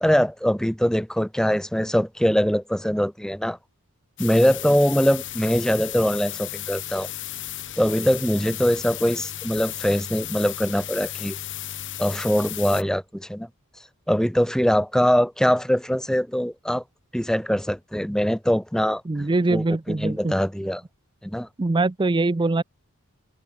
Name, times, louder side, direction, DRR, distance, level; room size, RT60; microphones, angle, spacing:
voice 1, 0.0-3.6 4.2-7.1 7.8-11.4 12.0-13.5 14.1-16.8 17.1-19.0 19.5-20.8 21.2-21.5, equal, 5° left, 1.7 m, -22 dB
sound 1, 4.2-12.8, left 12 dB, 55° left, 3.7 m, -34 dB
voice 2, 19.1-20.3 21.6-22.6, right 2 dB, 20° right, 0.5 m, -23 dB
open air
head